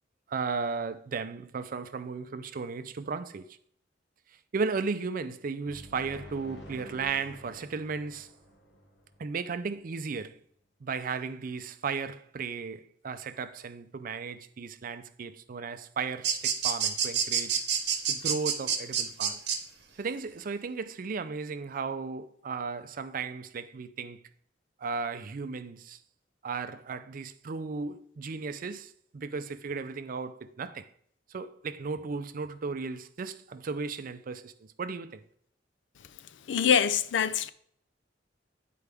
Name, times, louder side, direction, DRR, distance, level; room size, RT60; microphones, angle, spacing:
voice 1, 0.3-3.5 4.5-8.3 9.2-10.4 10.8-17.6 18.1-19.4 20.0-24.2 24.8-26.0 26.4-30.9 31.3-35.2, right 5 dB, 50° right, 0.4 m, -35 dB
sound 1, 5.6-9.4, equal, 70° left, 1.3 m, -49 dB
sound 2, 16.2-19.6, right 8 dB, 65° right, 0.9 m, -27 dB
voice 2, 36.5-37.5, left 7 dB, 85° left, 0.4 m, -24 dB
9.6 x 4.6 x 3.4 m
head